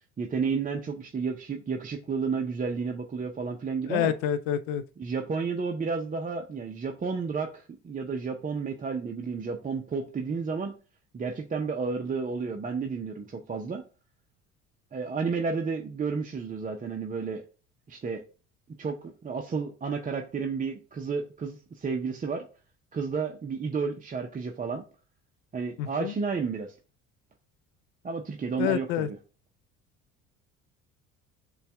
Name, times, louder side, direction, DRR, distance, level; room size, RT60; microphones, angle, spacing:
voice 1, 0.2-4.1 5.0-10.7 11.1-13.8 14.9-17.4 17.9-18.2 18.8-22.4 22.9-24.8 25.5-26.7 28.0-29.2, right 5 dB, 20° right, 0.6 m, -31 dB
voice 2, 3.9-4.8 25.8-26.1 28.6-29.1, left 10 dB, 65° left, 0.5 m, -28 dB
6.7 x 2.4 x 3.4 m
hypercardioid pair, 60°, 37 cm